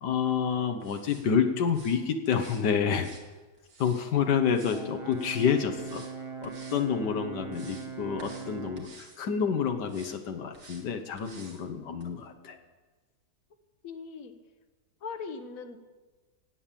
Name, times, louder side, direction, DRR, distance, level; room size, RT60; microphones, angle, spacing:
voice 1, 0.0-3.1 3.8-6.1 6.4-12.6, left 7 dB, 80° left, 7 dB, 1.6 m, -28 dB
sound 1, 0.8-1.3 1.7-2.0 2.3-2.6 2.9-4.1 4.5-4.8 5.1-5.5 5.8-6.1 6.4-6.8 7.2-7.9 8.2-8.5 8.8-9.2 9.9-10.2 10.5-10.8 11.2-11.6 12.0-12.1, right 3 dB, 60° right, 2.4 m, -51 dB
Brass instrument, 4.7-8.9, right 6 dB, 25° right, 0.8 m, -40 dB
voice 2, 11.8-12.6 13.8-14.4 15.0-15.8, left 5 dB, 55° left, 9 dB, 1.4 m, -42 dB
17.0 x 8.6 x 7.4 m, 1.3 s
omnidirectional pair, 1.8 m